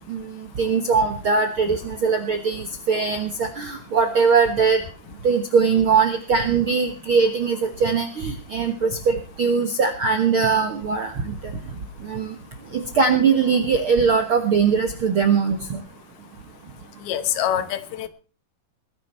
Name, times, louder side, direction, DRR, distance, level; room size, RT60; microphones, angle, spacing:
voice 1, 0.6-4.8 5.2-11.5 12.0-12.3 12.7-15.8, right 5 dB, 60° right, 1.3 m, -21 dB
voice 2, 17.1-18.1, left 10 dB, 80° left, 3.0 m, -25 dB
21.0 x 10.5 x 4.3 m
omnidirectional pair, 4.5 m